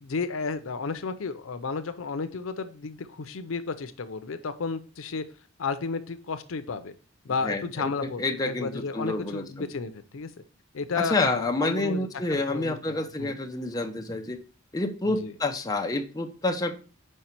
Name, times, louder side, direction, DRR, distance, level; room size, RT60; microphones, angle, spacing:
voice 1, 0.0-5.2 5.6-7.0 7.2-10.3 10.7-13.4 15.2-15.3, left 4 dB, 80° left, 10 dB, 0.6 m, -33 dB
voice 2, 7.4-9.4 11.0-14.4 14.7-16.7, left 2 dB, 20° left, 4 dB, 0.7 m, -28 dB
5.5 x 4.7 x 4.4 m, 0.38 s
head